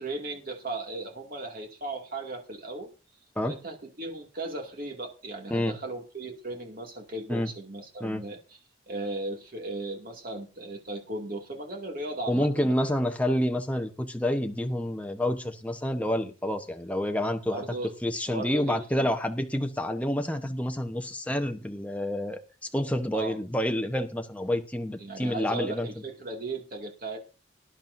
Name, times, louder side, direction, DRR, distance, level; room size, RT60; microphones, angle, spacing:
voice 1, 0.0-2.9 3.4-8.4 8.9-12.7 17.5-17.9 18.3-19.1 23.1-23.4 25.0-27.2, right 2 dB, 45° right, 2 dB, 2.3 m, -36 dB
voice 2, 12.3-17.6 18.0-25.9, left 1 dB, 5° left, 5 dB, 1.0 m, -28 dB
19.0 x 11.0 x 2.6 m, 0.33 s
head